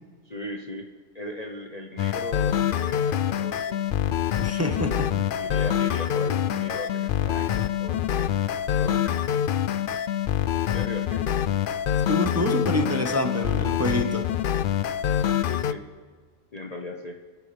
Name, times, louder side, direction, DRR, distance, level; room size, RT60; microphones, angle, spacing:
voice 1, 0.2-0.9 1.1-3.8 5.4-8.3 8.8-9.5 10.7-11.3 15.5-15.8 16.5-17.2, left 1 dB, 35° left, 2 dB, 0.9 m, -38 dB
sound 1, 2.0-15.7, left 10 dB, 90° left, 0.4 m, -25 dB
voice 2, 4.4-5.1 12.1-14.3, equal, 10° right, 3 dB, 1.0 m, -27 dB
28.5 x 11.5 x 3.4 m, 1.5 s
omnidirectional pair, 1.5 m